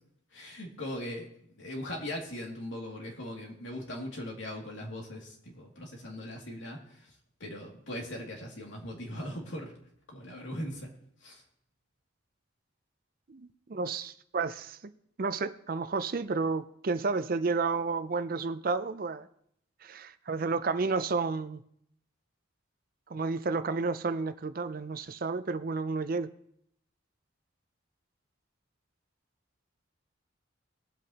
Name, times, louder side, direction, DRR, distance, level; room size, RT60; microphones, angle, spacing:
voice 1, 0.3-1.3 1.6-7.1 7.4-9.7 10.1-10.9 11.2-11.4, left 1 dB, 75° left, 0 dB, 2.4 m, -39 dB
voice 2, 13.3-14.8 15.2-19.3 19.8-21.6 23.1-26.3, right 4 dB, 45° right, 12 dB, 0.5 m, -31 dB
20.0 x 8.0 x 2.9 m, 0.70 s
head